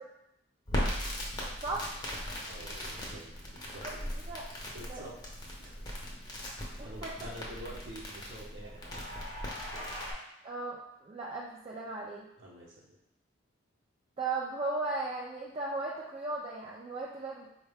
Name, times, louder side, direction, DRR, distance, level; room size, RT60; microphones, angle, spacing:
Crackle, 0.7-10.1, equal, 20° left, 0.6 m, -38 dB
voice 1, 2.5-3.4 3.7-4.1 4.7-5.1 5.6-5.9 6.5-9.1 9.5-9.9 12.4-13.0, right 1 dB, 60° right, -5 dB, 0.8 m, -48 dB
voice 2, 6.8-7.1 10.4-12.3 14.2-17.5, right 3 dB, 30° right, -4 dB, 0.3 m, -36 dB
4.5 x 2.2 x 3.4 m, 0.82 s
head